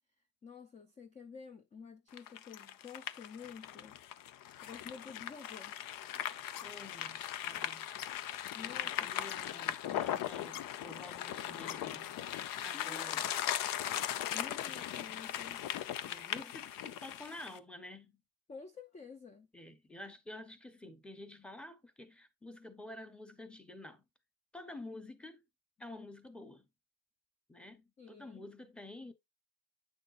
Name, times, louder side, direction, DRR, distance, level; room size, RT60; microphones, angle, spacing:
voice 1, 0.4-4.0 4.6-5.8 8.5-9.1 12.6-13.2 14.3-15.7 18.5-19.5 28.0-28.5, left 5 dB, 20° left, 0.6 m, -50 dB
sound 1, 2.1-17.6, left 11 dB, 65° left, 0.8 m, -39 dB
voice 2, 6.6-7.9 8.8-12.1 12.6-13.3 16.1-18.2 19.5-24.0 24.5-25.4 25.8-26.7 27.5-29.1, left 1 dB, 5° left, 0.9 m, -50 dB
9.2 x 6.6 x 2.5 m
cardioid pair, 160°, 37 cm